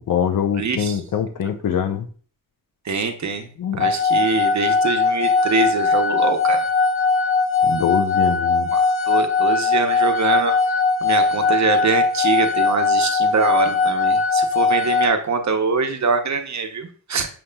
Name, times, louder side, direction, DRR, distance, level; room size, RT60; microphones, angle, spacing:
voice 1, 0.0-2.1 3.6-3.9 7.6-8.7, left 8 dB, 65° left, 8 dB, 0.6 m, -23 dB
voice 2, 0.6-1.0 2.9-3.5 3.8-6.7 8.7-10.6 11.0-17.3, right 4 dB, 55° right, 6 dB, 0.7 m, -23 dB
sound 1, 3.8-15.1, left 4 dB, 35° left, 0.8 m, -19 dB
6.9 x 2.9 x 2.2 m, 0.43 s
wide cardioid pair, 85°, 34 cm